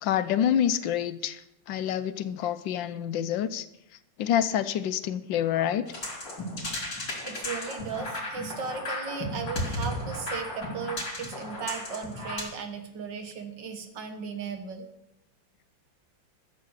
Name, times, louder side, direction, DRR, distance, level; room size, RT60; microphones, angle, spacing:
voice 1, 0.0-1.4 1.7-3.7 4.2-5.9, left 10 dB, 75° left, 12 dB, 1.3 m, -27 dB
sound 1, 5.9-12.4, left 1 dB, 60° left, 4.2 m, -34 dB
voice 2, 7.2-14.9, right 6 dB, 65° right, 6 dB, 1.9 m, -36 dB
13.5 x 7.5 x 6.4 m, 0.86 s
omnidirectional pair, 2.1 m